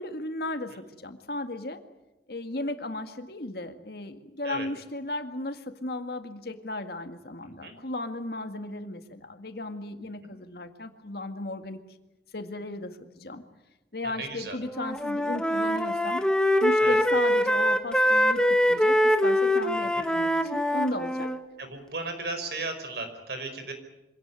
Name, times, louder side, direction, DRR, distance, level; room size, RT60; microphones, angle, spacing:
voice 1, 0.0-1.8 2.3-11.8 12.3-13.4 13.9-16.2 16.6-21.3, left 2 dB, 60° left, 8 dB, 1.9 m, -35 dB
voice 2, 7.4-7.7 10.2-10.3 14.0-14.6 16.8-17.0 19.9-20.0 20.4-20.5 21.6-23.7, right 3 dB, 60° right, 7 dB, 5.0 m, -36 dB
Wind instrument woodwind instrument, 14.6-21.4, equal, 5° left, 1.3 m, -24 dB
25.5 x 17.5 x 9.7 m, 0.98 s
head